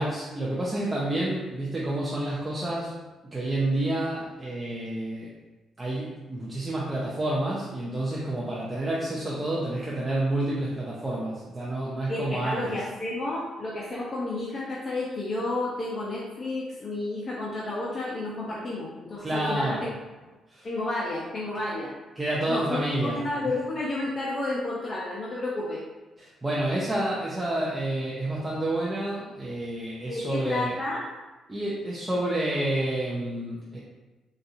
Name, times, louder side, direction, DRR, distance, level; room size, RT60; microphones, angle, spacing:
voice 1, 0.0-3.0 3.3-5.3 5.8-12.7 19.2-19.8 20.5-20.7 22.2-23.2 26.2-30.7 31.5-33.8, right 1 dB, 20° right, -5 dB, 0.6 m, -29 dB
voice 2, 12.1-19.9 20.6-21.9 22.5-22.8 23.1-25.8 30.1-31.1, left 2 dB, 35° left, -6 dB, 0.6 m, -31 dB
4.1 x 2.5 x 2.5 m, 1.2 s
cardioid pair, 90°, 0 cm